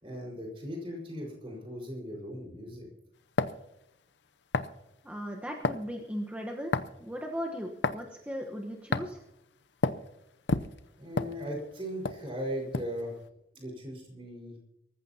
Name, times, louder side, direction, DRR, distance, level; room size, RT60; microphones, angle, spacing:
voice 1, 0.0-2.9 11.0-13.1 13.5-14.5, equal, 30° right, -1 dB, 4.8 m, -38 dB
sound 1, 3.4-3.6 4.5-4.8 5.6-5.9 6.7-7.0 7.8-8.0 8.9-9.2 9.8-10.0 10.5-11.7 12.1-12.2 12.7-13.0, left 3 dB, 75° left, 0.6 m, -29 dB
voice 2, 5.0-9.2, equal, 10° right, 1 dB, 1.1 m, -37 dB
24.0 x 14.5 x 2.9 m, 0.85 s
head